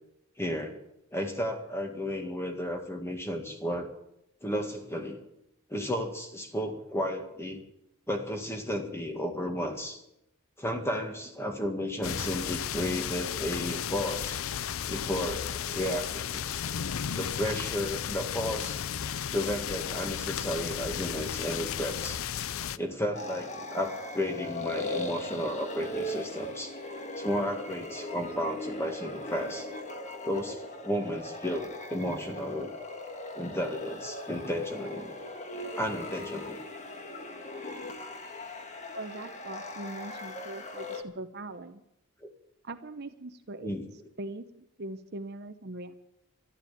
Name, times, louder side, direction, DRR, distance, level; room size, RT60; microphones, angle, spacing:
voice 1, 0.4-0.8 1.1-3.9 4.4-5.2 5.7-7.6 8.1-10.0 10.6-14.4 14.9-16.4 17.2-18.8 19.3-22.2 22.8-26.8 27.2-29.7 30.2-32.7 33.3-35.1 35.8-36.6 42.2-42.3 43.6-43.8, equal, 10° left, 4 dB, 1.9 m, -33 dB
sound 1, 12.0-22.8, left 9 dB, 75° left, 0.5 m, -34 dB
sound 2, 23.1-41.0, left 2 dB, 35° left, 1.5 m, -39 dB
voice 2, 38.9-41.8 42.6-43.7 44.2-45.9, right 2 dB, 50° right, 9 dB, 0.9 m, -41 dB
12.5 x 12.0 x 8.7 m, 0.84 s
head